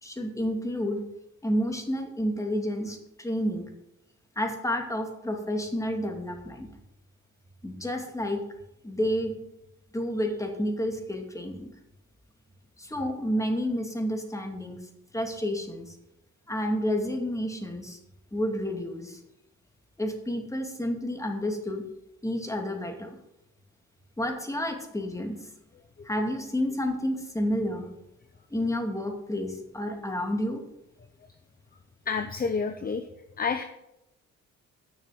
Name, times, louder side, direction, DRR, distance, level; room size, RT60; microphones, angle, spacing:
voice 1, 0.0-1.0 1.4-3.7 4.4-6.7 7.6-8.4 8.8-9.4 9.9-11.7 12.8-14.8 15.1-16.0 16.5-18.0 18.3-19.2 20.0-21.8 22.2-23.2 24.2-25.4 26.0-27.9 28.5-30.6, equal, 10° left, 4 dB, 2.4 m, -30 dB
voice 2, 32.1-33.1 33.4-33.6, left 5 dB, 30° left, 8 dB, 0.9 m, -29 dB
10.5 x 6.5 x 7.6 m, 0.86 s
cardioid pair, 90°, 30 cm